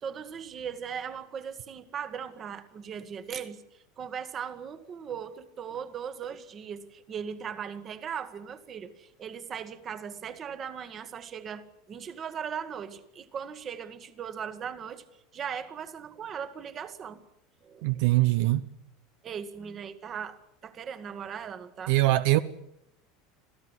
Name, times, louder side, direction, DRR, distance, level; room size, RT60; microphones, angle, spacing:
voice 1, 0.0-15.0 15.3-17.2 17.6-18.0 19.2-22.0, right 7 dB, 25° right, 1.7 m, -38 dB
voice 2, 17.8-18.6 21.9-22.4, right 17 dB, 60° right, 0.9 m, -22 dB
27.0 x 16.5 x 9.7 m
supercardioid pair, 170°, 0 cm